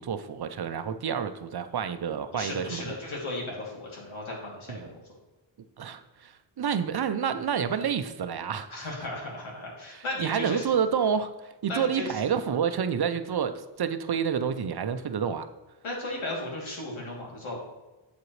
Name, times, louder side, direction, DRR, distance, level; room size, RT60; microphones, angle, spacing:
voice 1, 0.0-2.9 4.7-4.9 5.8-8.7 9.9-15.5, right 7 dB, 55° right, 10 dB, 0.6 m, -29 dB
voice 2, 2.3-5.0 8.7-10.6 11.7-12.1 15.8-17.6, left 2 dB, 85° left, -2 dB, 2.9 m, -35 dB
8.2 x 7.7 x 3.2 m, 1.1 s
wide cardioid pair, 115°, 47 cm